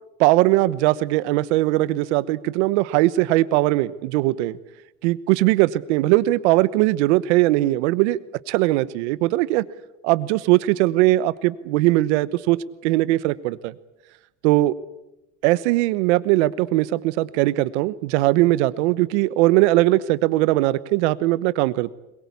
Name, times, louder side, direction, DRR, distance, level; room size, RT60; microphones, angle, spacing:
voice 1, 0.2-4.5 5.0-8.2 8.5-9.6 10.0-13.7 14.4-14.7 15.4-21.9, right 17 dB, 75° right, 17 dB, 1.1 m, -20 dB
22.0 x 21.0 x 8.4 m, 0.94 s
supercardioid pair, 145°, 35 cm